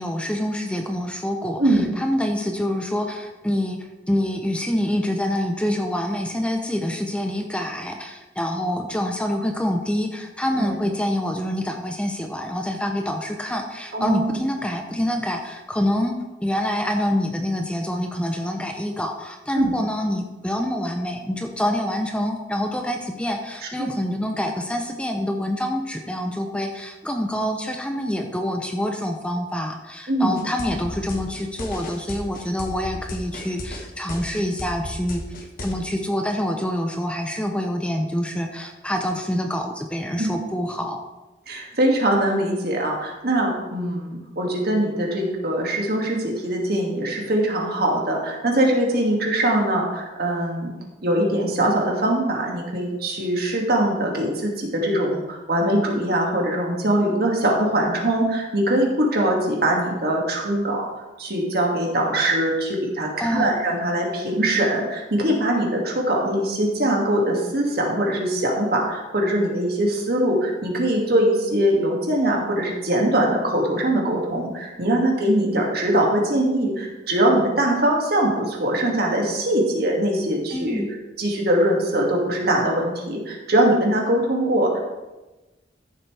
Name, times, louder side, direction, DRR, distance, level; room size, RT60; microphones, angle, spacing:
voice 1, 0.0-16.1 16.4-35.2 35.6-41.0 63.2-63.5 80.5-80.9, left 1 dB, 5° left, 4 dB, 0.7 m, -26 dB
voice 2, 13.9-14.4 19.5-19.7 30.1-30.3 40.2-40.3 41.5-50.7 51.0-60.8 61.2-80.8 81.2-84.8, right 1 dB, 60° right, -1 dB, 2.3 m, -22 dB
sound 1, 30.4-35.7, left 1 dB, 55° left, 1.4 m, -34 dB
13.5 x 7.5 x 3.4 m, 1.1 s
head